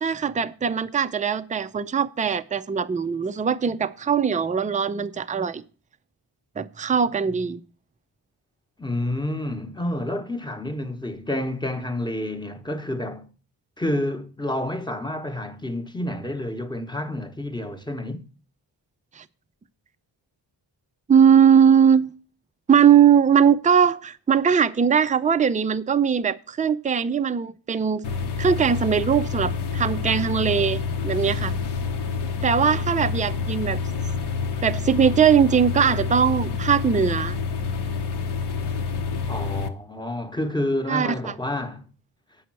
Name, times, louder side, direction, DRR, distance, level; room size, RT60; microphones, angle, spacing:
voice 1, 0.0-5.6 6.6-7.6 19.2-19.3 21.1-22.1 22.7-28.0 28.4-31.5 32.4-33.8 34.6-37.4 40.9-41.3, right 7 dB, 20° right, 0.4 m, -20 dB
voice 2, 8.8-13.3 13.8-18.2 39.3-41.9, left 1 dB, 10° left, 0.9 m, -29 dB
sound 1, 28.0-39.7, left 5 dB, 65° left, 1.0 m, -28 dB
8.2 x 5.5 x 7.4 m
wide cardioid pair, 100°, 44 cm